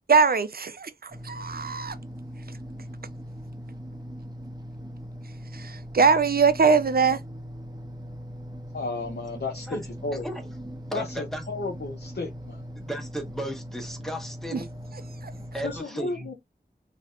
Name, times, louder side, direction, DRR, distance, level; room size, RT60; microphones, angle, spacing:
voice 1, 0.1-1.9 5.5-7.2 14.5-14.6 15.2-15.3, right 5 dB, 60° right, 0.4 m, -22 dB
sound 1, 1.1-15.8, equal, 25° right, 0.8 m, -40 dB
voice 2, 8.7-10.2 10.9-12.6 15.6-16.3, left 3 dB, 70° left, 0.7 m, -33 dB
voice 3, 9.5-10.5 10.9-11.4 12.8-14.7 15.5-16.3, right 1 dB, ahead, 1.0 m, -35 dB
3.2 x 2.8 x 2.3 m
wide cardioid pair, 50°, 18 cm